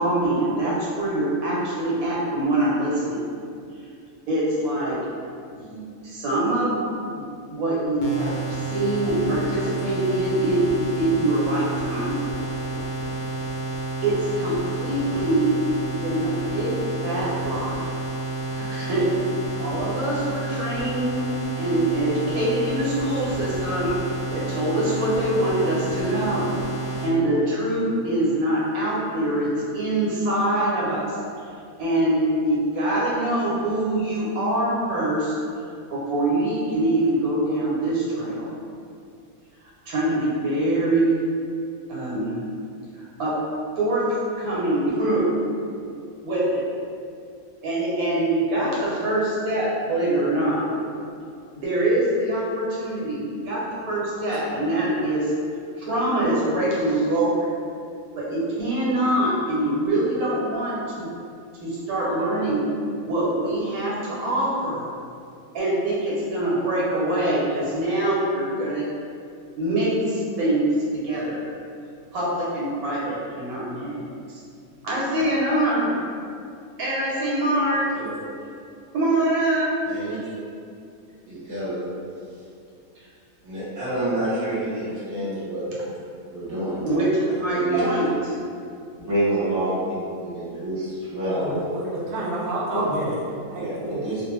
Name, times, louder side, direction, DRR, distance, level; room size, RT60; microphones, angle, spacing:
voice 1, 0.0-3.2 4.3-5.0 5.5-6.8 7.1-12.2 14.0-15.6 16.0-16.8 17.0-17.9 18.5-19.1 19.6-21.2 21.6-24.0 24.3-26.6 27.0-31.2 31.8-35.3 35.9-38.5 39.9-41.2 41.9-42.4 42.9-43.4 43.8-44.1 44.4-45.3 45.8-45.9 46.2-46.7 47.6-50.7 51.6-55.3 55.8-57.5 58.1-61.1 61.6-62.6 63.0-64.9 65.5-68.9 69.6-71.4 72.1-74.4 74.8-75.9 76.8-77.9 78.9-79.7 86.8-88.1, right 1 dB, 90° right, -6 dB, 1.2 m, -24 dB
sound 1, 8.0-27.1, right 2 dB, 65° left, 0.6 m, -30 dB
voice 2, 79.8-80.3 81.3-81.8 83.4-85.6 86.3-87.0 87.3-88.1 89.0-91.5 92.7-92.8 93.5-94.2, right 1 dB, 15° right, -11 dB, 0.7 m, -28 dB
voice 3, 91.2-94.2, right 1 dB, 70° right, -6 dB, 0.5 m, -29 dB
2.5 x 2.1 x 3.0 m, 2.4 s
omnidirectional pair, 1.5 m